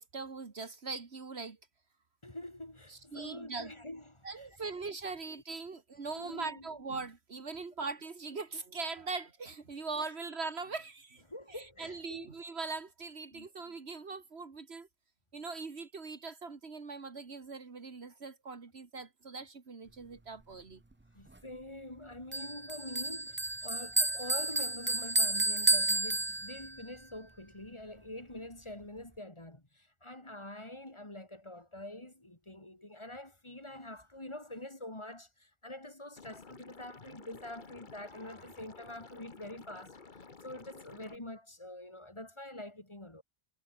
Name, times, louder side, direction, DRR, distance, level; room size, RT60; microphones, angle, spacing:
voice 1, 0.0-1.6 2.9-3.7 4.2-11.2 11.5-14.9 15.3-20.8, right 4 dB, 75° right, 2.1 m, -41 dB
voice 2, 2.2-4.5 5.0-5.1 6.1-6.7 11.3-12.3 13.3-13.5 21.1-43.2, left 1 dB, 25° left, 3.0 m, -46 dB
Bell, 22.3-26.8, right 2 dB, 10° right, 0.7 m, -31 dB
Liquid, 36.2-41.2, left 4 dB, 45° left, 1.7 m, -53 dB
omnidirectional pair, 1.1 m